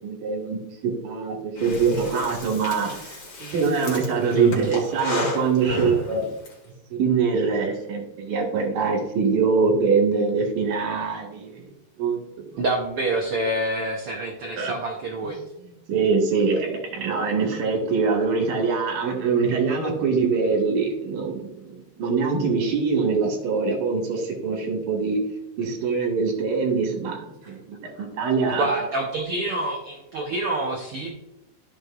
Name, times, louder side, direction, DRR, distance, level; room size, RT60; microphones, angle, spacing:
voice 1, 0.0-3.2 3.5-6.3 7.0-11.7 12.0-12.2 12.5-12.6 14.6-14.7 15.9-25.2 25.6-28.7, right 5 dB, 65° right, -1 dB, 3.2 m, -23 dB
Breathing, 1.6-6.5, left 2 dB, 40° left, 2.5 m, -32 dB
voice 2, 4.3-4.8 12.6-15.4 28.0-28.1 28.5-31.2, right 2 dB, 85° right, 0 dB, 1.2 m, -27 dB
13.5 x 6.4 x 2.5 m, 0.87 s
omnidirectional pair, 4.0 m